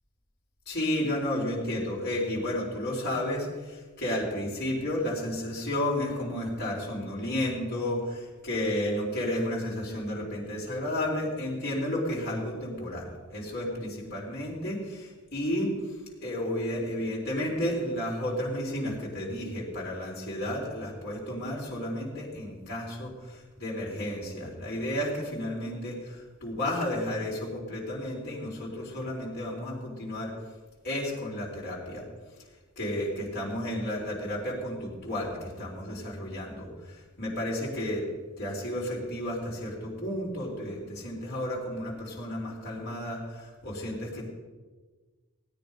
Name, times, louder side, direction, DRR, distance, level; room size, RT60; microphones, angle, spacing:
voice 1, 0.7-15.7 16.2-30.3 30.8-32.0 32.8-38.0 38.4-44.3, left 1 dB, 50° left, -5 dB, 4.1 m, -32 dB
16.5 x 9.3 x 5.3 m, 1.3 s
head